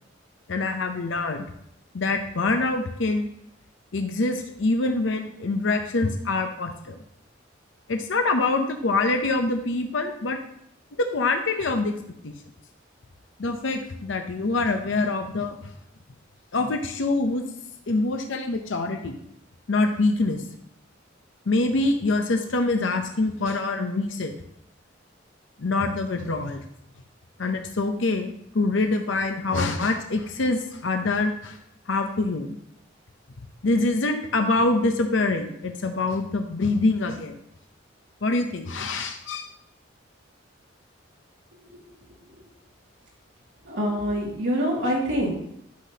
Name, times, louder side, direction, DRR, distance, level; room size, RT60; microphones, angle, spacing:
voice 1, 0.5-1.5 1.9-3.3 3.9-7.0 7.9-10.4 11.0-11.9 12.2-12.3 13.4-15.6 16.5-17.4 17.9-19.2 19.7-20.4 21.5-24.3 25.6-26.6 27.4-31.6 31.9-32.6 33.6-37.3 38.2-39.5, left 3 dB, 75° left, 5 dB, 0.7 m, -25 dB
voice 2, 43.6-45.3, equal, 75° right, -3 dB, 2.3 m, -25 dB
11.5 x 5.9 x 2.8 m, 0.74 s
head